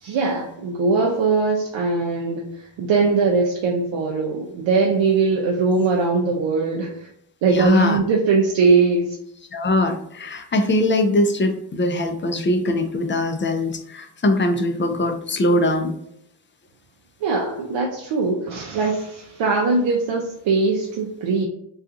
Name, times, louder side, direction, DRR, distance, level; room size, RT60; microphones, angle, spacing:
voice 1, 0.0-2.4 2.8-7.1 7.4-9.2 17.2-21.5, right 4 dB, 80° right, -1 dB, 0.5 m, -21 dB
voice 2, 7.5-8.0 9.5-15.9, left 1 dB, 30° left, 6 dB, 0.3 m, -21 dB
2.7 x 2.4 x 2.4 m, 0.74 s
cardioid pair, 65°, 43 cm